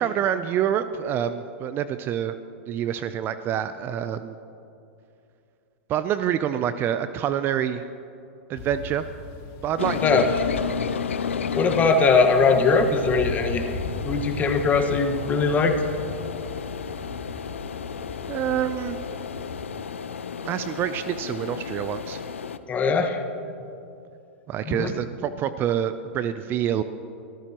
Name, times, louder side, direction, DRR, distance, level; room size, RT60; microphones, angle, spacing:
voice 1, 0.0-2.4 2.7-4.3 5.9-7.9 8.5-9.1 9.6-10.3 18.3-19.0 20.4-22.2 24.5-26.8, right 10 dB, 30° right, 12 dB, 0.5 m, -27 dB
sound 1, 8.5-19.7, left 4 dB, 45° left, 1.6 m, -38 dB
sound 2, 9.8-22.6, left 6 dB, 85° left, 0.6 m, -33 dB
voice 2, 11.5-13.7 14.0-15.7 22.7-23.2 24.7-24.9, left 4 dB, 25° left, 5 dB, 1.5 m, -20 dB
24.0 x 14.0 x 3.0 m, 2.6 s
hypercardioid pair, 110°, 7 cm